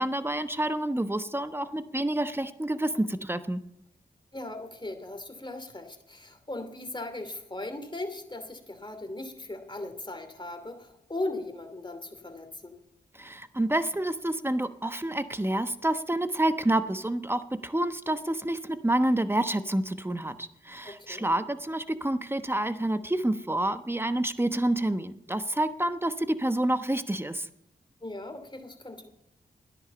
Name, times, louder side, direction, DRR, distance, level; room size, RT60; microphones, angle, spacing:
voice 1, 0.0-3.6 13.2-27.5, right 1 dB, 10° right, 11 dB, 1.1 m, -28 dB
voice 2, 4.3-12.8 20.8-21.3 28.0-29.1, left 2 dB, 25° left, 6 dB, 2.7 m, -38 dB
13.5 x 10.5 x 6.9 m, 0.81 s
cardioid pair, 45°, 19 cm